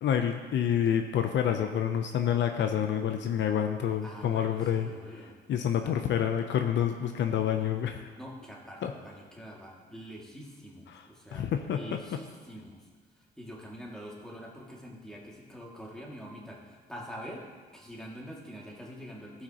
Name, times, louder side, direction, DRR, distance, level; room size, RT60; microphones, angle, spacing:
voice 1, 0.0-4.9 5.5-8.1 8.8-8.9 10.9-11.0 11.3-11.8, left 9 dB, 65° left, 6 dB, 0.6 m, -28 dB
voice 2, 4.0-6.0 8.2-12.8 13.4-17.5 17.7-19.4, equal, 5° left, -3 dB, 2.2 m, -45 dB
15.0 x 5.8 x 2.9 m, 1.4 s
cardioid pair, 90°, 20 cm